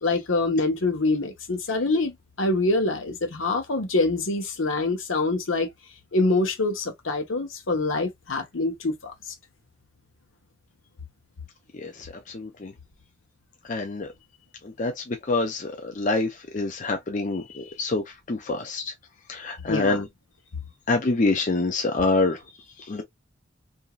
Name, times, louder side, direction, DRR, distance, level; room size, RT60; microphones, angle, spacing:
voice 1, 0.0-5.7 6.1-9.1 19.7-20.0, left 2 dB, 75° left, 0.9 m, -25 dB
voice 2, 12.3-12.7 13.7-14.1 14.8-14.9 15.3-16.3 16.5-18.0 18.3-18.8 19.3-20.1 20.9-22.4 22.9-23.0, left 3 dB, 40° left, 0.5 m, -25 dB
3.0 x 2.6 x 2.3 m
head